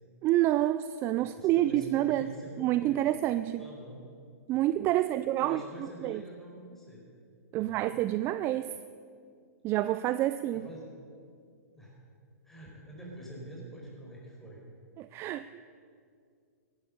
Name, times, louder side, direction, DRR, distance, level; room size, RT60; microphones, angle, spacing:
voice 1, 0.2-2.3 2.6-3.7 4.5-6.2 7.5-8.7 9.6-10.7 15.0-15.5, right 14 dB, 30° right, 13 dB, 0.4 m, -28 dB
voice 2, 1.2-3.0 3.6-4.0 5.4-7.1 7.5-7.9 10.5-10.9 11.7-12.0 12.4-14.6, right 1 dB, 5° left, -4 dB, 4.8 m, -46 dB
17.0 x 11.0 x 6.7 m, 2.3 s
hypercardioid pair, 130°, 9 cm